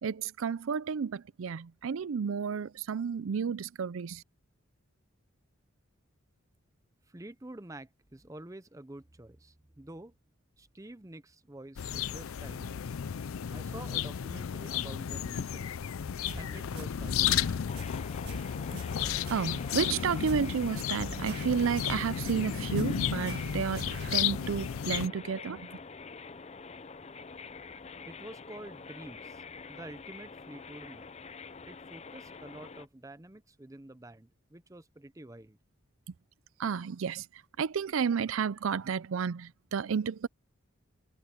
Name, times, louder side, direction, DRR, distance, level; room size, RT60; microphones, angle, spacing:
voice 1, 0.0-4.2 19.3-25.7 36.6-37.3 37.6-40.3, right 6 dB, 80° right, 0.4 m, -31 dB
voice 2, 7.1-10.1 10.6-13.0 13.5-15.9 16.3-17.7 28.0-31.1 31.7-35.6, right 1 dB, 15° right, 0.7 m, -48 dB
sound 1, 11.8-25.1, left 8 dB, 90° left, 0.5 m, -33 dB
sound 2, 16.2-16.5 16.8-17.8 18.2-18.5 18.8-20.5 20.8-21.8 22.2-22.5 22.8-24.2, right 2 dB, 50° right, 2.1 m, -44 dB
sound 3, 17.7-32.9, left 5 dB, 30° left, 0.5 m, -46 dB
head